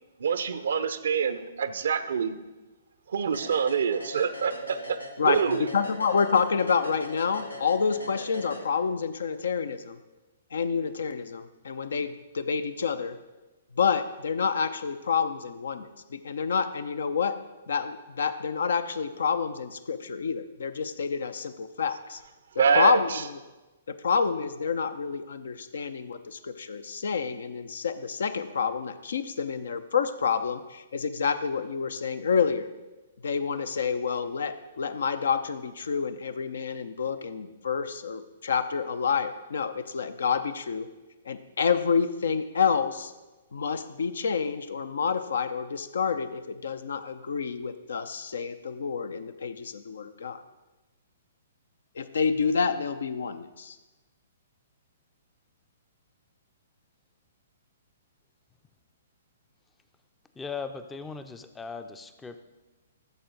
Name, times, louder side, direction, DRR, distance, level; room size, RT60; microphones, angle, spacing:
voice 1, 0.2-2.4 3.1-5.0 5.2-5.6 22.6-23.0, right 6 dB, 60° right, 12 dB, 0.6 m, -25 dB
sound 1, 3.3-9.1, left 1 dB, 90° left, 1.2 m, -41 dB
voice 2, 5.2-10.0 10.5-13.2 13.7-17.4 17.7-22.2 22.7-23.4 23.9-32.7 33.2-40.9 41.3-43.1 43.5-50.4 52.0-53.8, left 6 dB, 60° left, 11 dB, 0.6 m, -28 dB
voice 3, 60.4-62.4, left 5 dB, 10° left, 9 dB, 0.5 m, -38 dB
13.5 x 6.9 x 3.9 m, 1.1 s
figure-of-eight pair, 120°, 0 cm